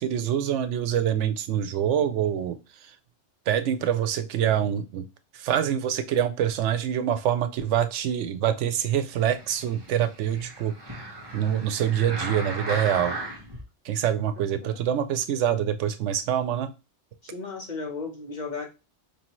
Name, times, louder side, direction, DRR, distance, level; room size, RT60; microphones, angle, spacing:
voice 1, 0.0-3.0 3.5-5.0 5.3-11.0 11.3-13.2 13.8-16.7, right 9 dB, 80° right, 10 dB, 0.9 m, -25 dB
sound 1, 9.0-13.6 14.2-14.3, right 2 dB, 20° right, 1.1 m, -36 dB
voice 2, 14.4-14.8 17.2-18.7, left 4 dB, 40° left, 1 dB, 1.0 m, -35 dB
4.8 x 2.7 x 3.0 m, 0.27 s
omnidirectional pair, 1.2 m